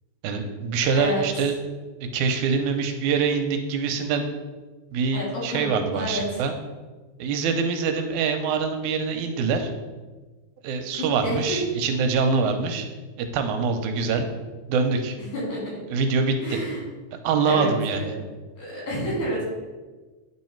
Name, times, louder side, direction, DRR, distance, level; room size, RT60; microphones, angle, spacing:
voice 1, 0.2-1.5 2.1-4.3 4.9-6.5 7.2-9.7 10.6-12.9 13.2-14.3 14.7-15.2 15.9-16.6 17.2-18.1, right 5 dB, 90° right, 5 dB, 2.1 m, -24 dB
voice 2, 5.1-6.4 11.2-11.6 15.3-15.8 16.4-16.8 17.5-18.1 18.6-19.4, equal, 85° left, -5 dB, 4.0 m, -29 dB
9.3 x 3.2 x 4.4 m, 1.3 s
omnidirectional pair, 3.4 m